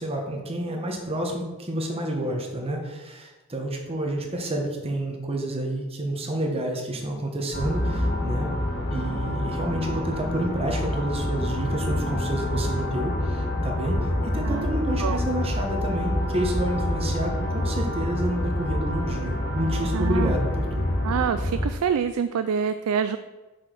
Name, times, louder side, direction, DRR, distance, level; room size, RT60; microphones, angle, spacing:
voice 1, 0.0-8.5 8.9-20.9, right 1 dB, 25° right, 1 dB, 1.3 m, -29 dB
sound 1, 7.5-21.7, left 1 dB, 50° left, 1.1 m, -27 dB
voice 2, 19.9-20.3 21.0-23.2, right 7 dB, 85° right, 10 dB, 0.4 m, -26 dB
6.1 x 5.1 x 5.9 m, 1.2 s
head